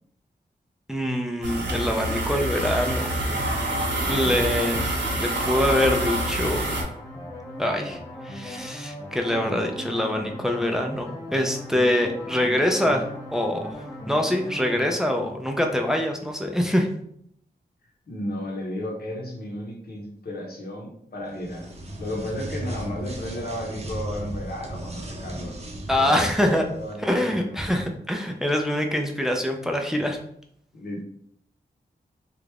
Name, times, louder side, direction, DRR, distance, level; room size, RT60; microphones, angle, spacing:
voice 1, 0.9-3.1 4.1-4.8 5.1-6.6 7.6-13.7 14.1-16.9 25.9-26.6 27.0-30.2, left 1 dB, 5° right, 2 dB, 0.4 m, -24 dB
sound 1, 1.4-6.8, right 1 dB, 85° right, 1.0 m, -26 dB
voice 2, 4.0-4.4 18.1-21.7 22.0-25.6 25.9-27.7 30.7-31.0, left 1 dB, 60° left, 0 dB, 1.0 m, -34 dB
sound 2, 6.0-14.9, left 1 dB, 20° left, 0.8 m, -38 dB
sound 3, 21.3-27.0, right 1 dB, 35° right, 0.7 m, -36 dB
3.3 x 2.5 x 3.3 m, 0.69 s
wide cardioid pair, 100°, 18 cm